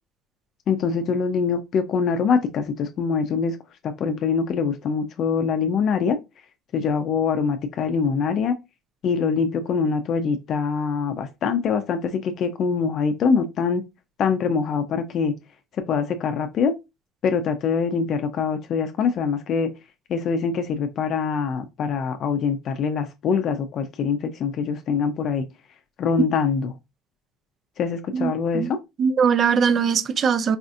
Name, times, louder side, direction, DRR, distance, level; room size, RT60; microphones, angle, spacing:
voice 1, 0.7-3.6 3.8-6.2 6.7-8.6 9.0-13.8 14.2-15.3 15.9-16.7 17.2-19.7 20.1-25.4 26.0-26.7 27.8-28.8, left 6 dB, 45° left, 0.5 m, -24 dB
voice 2, 28.1-28.7 29.0-30.6, right 6 dB, 40° right, 0.4 m, -21 dB
4.1 x 2.6 x 2.4 m
cardioid pair, 120°, 0 cm